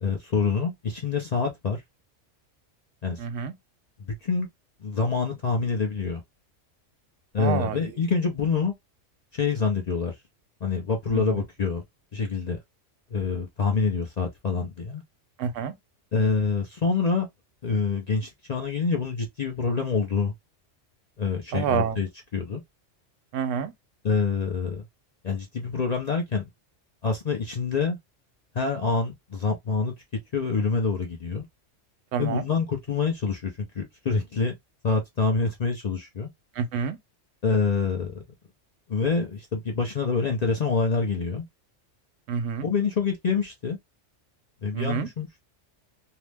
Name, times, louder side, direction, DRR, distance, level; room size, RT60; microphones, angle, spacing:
voice 1, 0.0-1.8 3.0-3.2 4.2-4.5 4.8-6.2 7.3-8.7 9.3-10.1 10.6-11.8 12.1-12.6 13.1-15.0 16.1-17.3 17.6-20.3 21.2-22.6 24.0-24.8 25.2-26.4 27.0-28.0 28.5-29.9 30.3-31.5 32.2-34.6 34.8-36.3 37.4-38.2 38.9-41.5 42.6-43.8 44.6-45.4, left 4 dB, 50° left, 0.5 m, -26 dB
voice 2, 3.2-3.5 7.4-7.8 15.4-15.7 21.5-22.0 23.3-23.7 32.1-32.4 36.6-37.0 42.3-42.7 44.7-45.1, right 7 dB, 80° right, 0.9 m, -27 dB
2.8 x 2.0 x 3.2 m
omnidirectional pair, 1.3 m